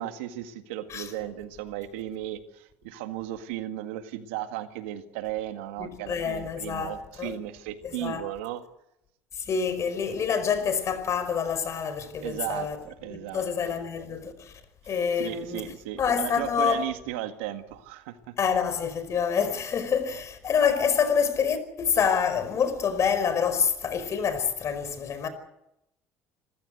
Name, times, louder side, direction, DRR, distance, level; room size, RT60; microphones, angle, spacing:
voice 1, 0.0-8.6 12.2-13.4 15.2-18.3, right 12 dB, 85° right, 1.8 m, -35 dB
voice 2, 5.8-6.9 7.2-7.4 7.8-8.2 9.3-12.8 13.1-14.5 14.9-15.6 16.0-16.8 18.4-25.3, left 7 dB, 50° left, 5.0 m, -27 dB
27.0 x 15.0 x 8.1 m
hypercardioid pair, 70°, 6 cm